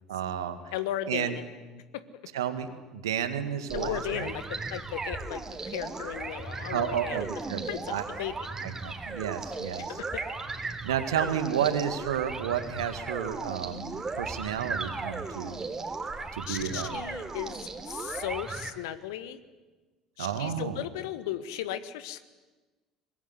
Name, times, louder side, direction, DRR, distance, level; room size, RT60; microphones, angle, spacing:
voice 1, 0.1-0.7 1.1-1.4 2.3-4.3 6.7-7.6 7.9-8.0 8.6-10.0 10.8-15.6 16.3-16.9 20.2-20.8, right 9 dB, 75° right, 9 dB, 2.0 m, -31 dB
voice 2, 0.7-1.5 1.9-2.0 3.7-7.3 7.7-8.3 9.8-10.2 16.5-17.6 17.8-19.4 20.2-22.2, left 12 dB, 70° left, 13 dB, 1.5 m, -36 dB
sound 1, 3.7-18.7, right 3 dB, 25° right, 3.4 m, -36 dB
24.0 x 21.5 x 9.8 m, 1.2 s
figure-of-eight pair, 60°, 2 cm